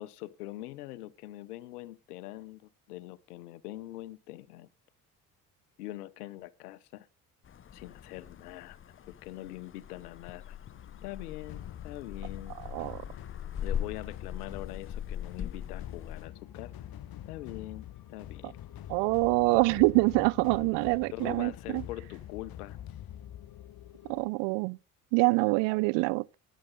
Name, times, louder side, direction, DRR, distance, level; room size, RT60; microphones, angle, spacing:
voice 1, 0.0-4.7 5.8-7.1 7.7-8.8 9.1-10.6 11.0-12.5 13.6-16.7 17.3-18.5 21.1-22.8, left 16 dB, 85° left, 0.8 m, -43 dB
sound 1, 7.4-16.3, left 9 dB, 30° left, 0.6 m, -41 dB
sound 2, 10.7-24.3, left 11 dB, 50° left, 1.2 m, -46 dB
voice 2, 18.9-21.8 24.1-24.8 25.1-26.3, right 27 dB, 70° right, 0.6 m, -25 dB
15.5 x 10.0 x 3.8 m
hypercardioid pair, 55°, 45 cm